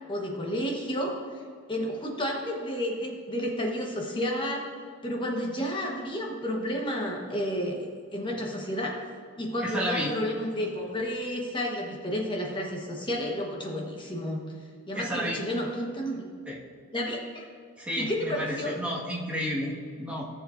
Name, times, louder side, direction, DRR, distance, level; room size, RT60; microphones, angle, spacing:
voice 1, 0.1-1.2 1.7-4.7 5.0-7.8 8.1-9.0 9.4-14.4 14.9-16.3 16.9-17.5 18.0-18.7, equal, 25° left, -1 dB, 1.2 m, -31 dB
voice 2, 9.6-10.1 14.9-15.4 16.4-16.6 17.8-20.2, equal, 5° right, -6 dB, 1.6 m, -31 dB
14.0 x 7.3 x 2.6 m, 2.1 s
head